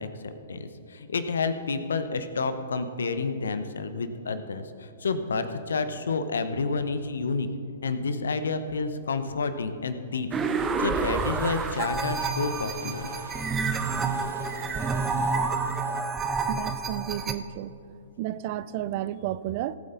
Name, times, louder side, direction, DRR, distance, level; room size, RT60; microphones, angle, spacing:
voice 1, 0.0-7.5 7.8-10.3 10.5-13.1, left 4 dB, 75° left, 10 dB, 0.9 m, -30 dB
sound 1, 10.3-17.3, right 4 dB, 15° right, 0.7 m, -29 dB
sound 2, 10.3-16.0, right 2 dB, 90° right, 1.4 m, -46 dB
sound 3, 10.9-15.3, right 1 dB, 70° right, 2.9 m, -50 dB
voice 2, 16.5-17.7 18.2-19.8, right 13 dB, 45° right, 16 dB, 0.5 m, -32 dB
18.5 x 8.3 x 4.0 m, 2.5 s
hypercardioid pair, 120°, 0 cm